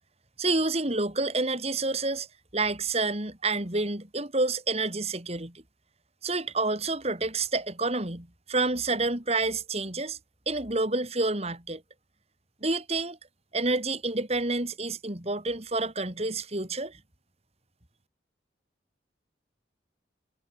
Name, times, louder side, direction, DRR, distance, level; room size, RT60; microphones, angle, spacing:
voice 1, 0.4-2.3 2.5-5.6 6.2-10.2 10.5-11.8 12.6-13.2 13.5-17.0, right 3 dB, 35° right, 3.5 m, -28 dB
head